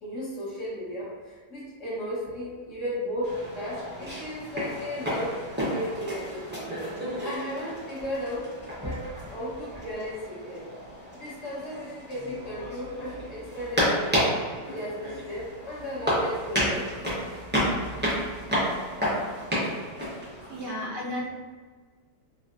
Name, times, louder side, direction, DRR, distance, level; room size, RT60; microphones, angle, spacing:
voice 1, 0.0-5.4 5.7-6.6 7.2-10.7 11.1-14.3 14.6-16.9, equal, 50° left, -9 dB, 1.4 m, -35 dB
sound 1, 3.2-20.7, equal, 10° right, 0.5 m, -31 dB
voice 2, 20.5-21.3, left 1 dB, 85° right, -4 dB, 1.5 m, -33 dB
4.0 x 2.4 x 2.6 m, 1.4 s
omnidirectional pair, 1.8 m